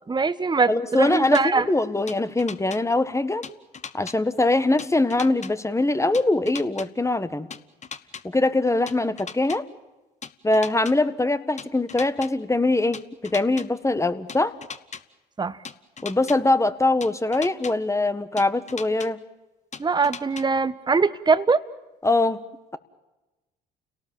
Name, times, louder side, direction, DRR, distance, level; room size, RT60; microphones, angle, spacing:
voice 1, 0.1-1.7 15.4-15.6 19.8-21.6, right 4 dB, 20° right, 13 dB, 1.0 m, -22 dB
voice 2, 0.7-3.4 3.9-7.5 8.2-9.6 10.4-14.5 16.0-19.2 22.0-22.4, left 2 dB, 15° left, 13 dB, 1.5 m, -22 dB
sound 1, 1.3-1.4 2.1-2.8 3.4-4.2 4.8-5.5 6.1-6.9 7.5-8.2 8.9-9.6 10.2-10.9 11.6-12.3 12.9-13.7 14.3-15.0 15.6-16.4 17.0-17.7 18.4-19.1 19.7-20.4, left 6 dB, 35° left, 1.2 m, -37 dB
29.5 x 18.0 x 7.4 m, 1.1 s
hypercardioid pair, 55°, 21 cm